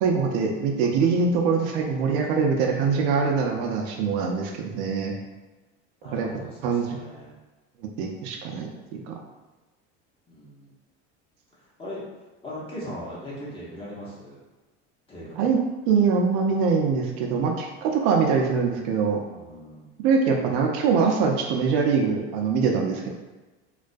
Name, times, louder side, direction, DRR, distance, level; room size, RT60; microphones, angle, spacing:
voice 1, 0.0-5.1 6.1-6.3 6.6-6.9 8.0-9.1 15.4-15.6 15.9-19.2 20.0-23.1, right 5 dB, 70° right, 1 dB, 0.5 m, -23 dB
voice 2, 6.0-7.4 10.3-10.7 11.5-12.0 12.4-14.4 15.1-15.5 19.3-19.9, equal, 15° left, -6 dB, 0.7 m, -39 dB
2.3 x 2.1 x 2.5 m, 1.2 s
supercardioid pair, 125°, 34 cm